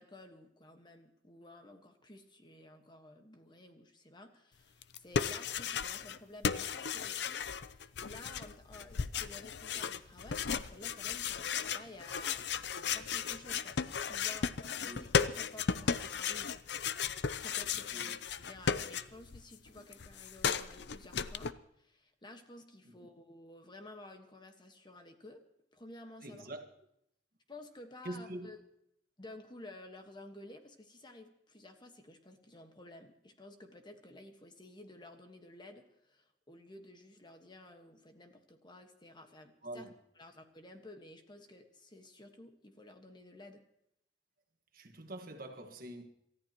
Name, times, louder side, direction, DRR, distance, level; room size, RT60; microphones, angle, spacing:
voice 1, 0.0-16.5 17.4-25.4 25.7-26.5 27.5-28.6 29.2-39.9 40.1-43.6, left 1 dB, 25° left, 1.4 m, -53 dB
sound 1, 4.8-6.2 6.4-19.4 19.7-21.5, left 6 dB, 65° left, 0.6 m, -35 dB
voice 2, 26.2-26.6 28.0-28.5 39.6-39.9 44.7-46.1, right 1 dB, 55° right, 1.6 m, -44 dB
27.5 x 14.0 x 3.0 m
head